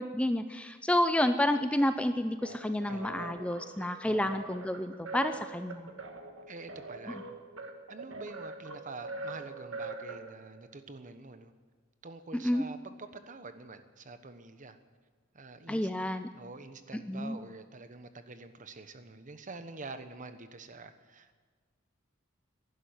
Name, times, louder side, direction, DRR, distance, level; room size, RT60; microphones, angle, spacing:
voice 1, 0.0-5.9 12.3-12.6 15.7-16.3 16.9-17.4, left 1 dB, 5° left, 9 dB, 0.4 m, -30 dB
sound 1, 2.4-10.7, right 2 dB, 85° right, 1.6 m, -43 dB
voice 2, 2.9-3.4 4.0-4.4 6.5-7.3 7.9-11.5 12.0-14.8 15.3-15.9 16.3-21.4, right 3 dB, 40° right, 10 dB, 1.0 m, -46 dB
11.5 x 11.5 x 9.5 m, 1.4 s
head